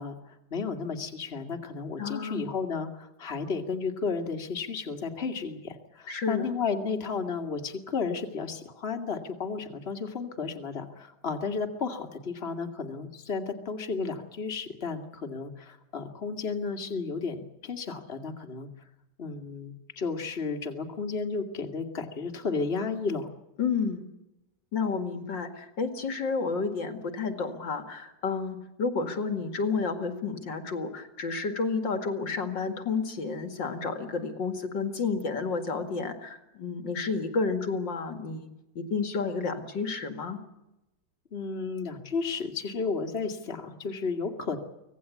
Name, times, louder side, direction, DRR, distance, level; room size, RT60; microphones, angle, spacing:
voice 1, 0.0-18.7 19.2-23.3 41.3-44.6, left 4 dB, 30° left, 5 dB, 2.3 m, -33 dB
voice 2, 2.0-2.5 6.1-6.5 23.6-24.1 24.7-38.5 38.8-40.4, left 4 dB, 65° left, 7 dB, 2.8 m, -31 dB
25.0 x 18.5 x 8.4 m, 0.92 s
omnidirectional pair, 2.1 m